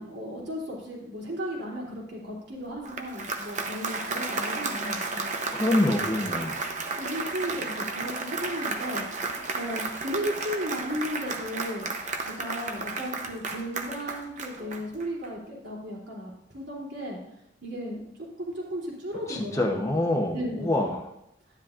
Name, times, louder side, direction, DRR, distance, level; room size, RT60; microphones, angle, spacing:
voice 1, 0.0-5.3 6.4-6.6 6.9-9.1 9.5-11.9 12.2-17.2 17.6-18.0 18.4-20.0 20.3-20.9, equal, 65° right, -3 dB, 3.1 m, -35 dB
Applause, 2.7-15.3, right 3 dB, 40° right, 0.8 m, -33 dB
voice 2, 5.5-6.6 19.3-21.0, left 1 dB, 15° left, 1 dB, 0.8 m, -26 dB
11.5 x 10.5 x 2.5 m, 0.81 s
head